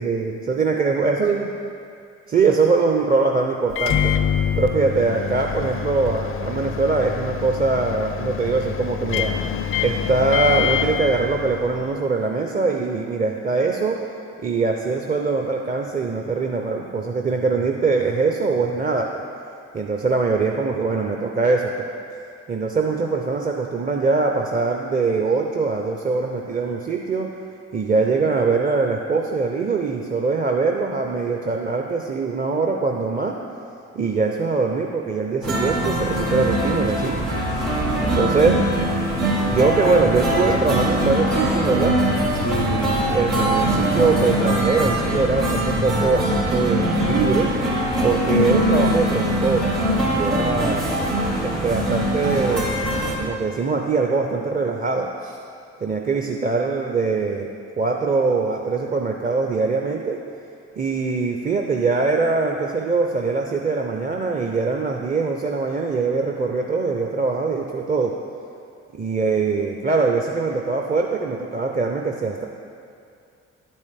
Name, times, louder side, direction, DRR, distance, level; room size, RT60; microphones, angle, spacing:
voice 1, 0.0-1.5 2.3-4.1 4.6-9.3 9.8-14.0 14.4-19.2 19.7-21.7 22.5-27.3 27.7-33.4 33.9-37.3 38.0-38.6 39.4-42.0 42.4-47.5 48.0-49.6 50.1-50.8 51.4-52.8 53.2-55.4 55.8-57.5 57.8-60.2 60.8-68.1 68.9-72.5, right 4 dB, 25° right, 2 dB, 0.6 m, -22 dB
Microwave oven, 3.7-11.9, left 8 dB, 45° left, 0.4 m, -26 dB
sound 1, 35.4-53.1, equal, 90° right, 1.9 m, -22 dB
10.5 x 5.4 x 3.4 m, 2.4 s
hypercardioid pair, 50°, 32 cm